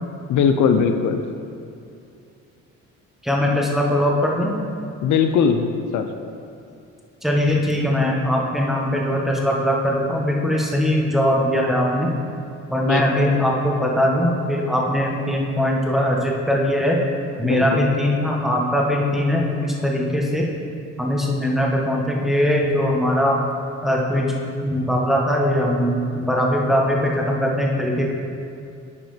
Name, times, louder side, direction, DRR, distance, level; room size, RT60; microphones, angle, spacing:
voice 1, 0.3-1.2 5.0-6.1 12.9-13.3 17.4-17.9, left 6 dB, 75° left, 6 dB, 0.6 m, -20 dB
voice 2, 3.2-4.6 7.2-12.1 12.7-17.0 17.4-20.5 21.0-23.4 23.8-24.3 24.6-28.1, equal, ahead, -2 dB, 1.4 m, -21 dB
9.3 x 5.0 x 5.0 m, 2.6 s
cardioid pair, 90°, 30 cm